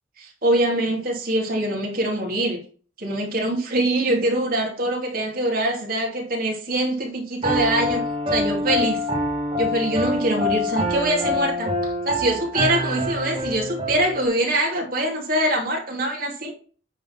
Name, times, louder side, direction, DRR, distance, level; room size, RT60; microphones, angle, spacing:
voice 1, 0.4-2.6 3.0-8.0 8.3-9.0 9.6-16.5, right 1 dB, 45° right, 0 dB, 2.7 m, -23 dB
Piano, 7.4-14.3, left 1 dB, 25° right, 1.5 m, -25 dB
9.3 x 4.0 x 5.9 m, 0.41 s
head